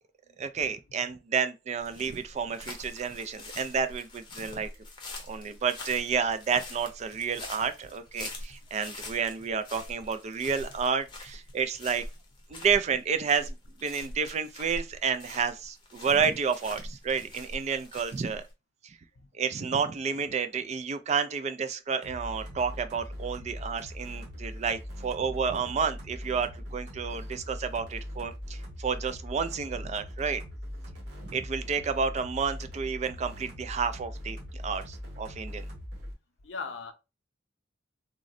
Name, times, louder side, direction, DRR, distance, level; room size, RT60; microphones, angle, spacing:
voice 1, 0.4-4.7 5.3-12.0 12.5-13.5 13.8-18.4 18.8-19.0 19.3-30.4 31.2-35.7, right 6 dB, 35° right, 0.3 m, -30 dB
sound 1, 1.8-18.5, left 2 dB, 25° left, 0.7 m, -44 dB
sound 2, 22.0-36.1, equal, 65° right, 1.2 m, -41 dB
voice 2, 36.4-36.9, left 5 dB, 70° left, 0.6 m, -39 dB
3.7 x 2.1 x 2.5 m
head